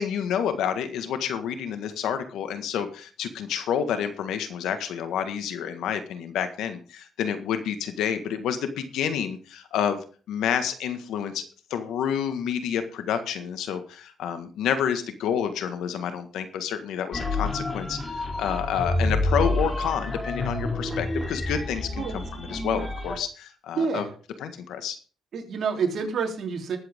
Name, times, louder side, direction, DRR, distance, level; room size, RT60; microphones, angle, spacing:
voice 1, 0.0-24.1 24.4-25.0, left 8 dB, 80° left, 9 dB, 1.6 m, -29 dB
sound 1, 17.1-23.2, left 2 dB, 25° left, 3.2 m, -28 dB
voice 2, 23.8-24.1 25.3-26.8, right 5 dB, 55° right, 3 dB, 3.3 m, -28 dB
20.0 x 7.9 x 3.7 m, 0.38 s
cardioid pair, 90°, 0 cm